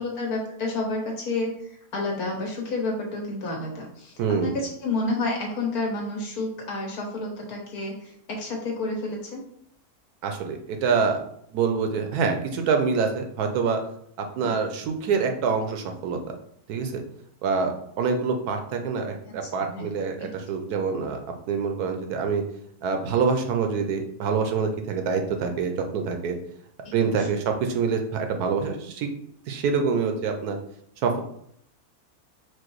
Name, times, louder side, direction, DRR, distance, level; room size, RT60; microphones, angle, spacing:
voice 1, 0.0-9.4 19.4-19.9 26.8-27.4, left 2 dB, 75° left, -1 dB, 1.6 m, -30 dB
voice 2, 4.2-4.5 10.2-11.2 11.5-13.8 14.2-16.2 16.7-17.0 17.4-21.2 21.5-22.4 22.8-26.4 26.9-29.1 29.5-30.6 31.0-31.2, right 5 dB, 80° right, 5 dB, 1.2 m, -26 dB
4.6 x 2.3 x 4.5 m, 0.69 s
omnidirectional pair, 1.6 m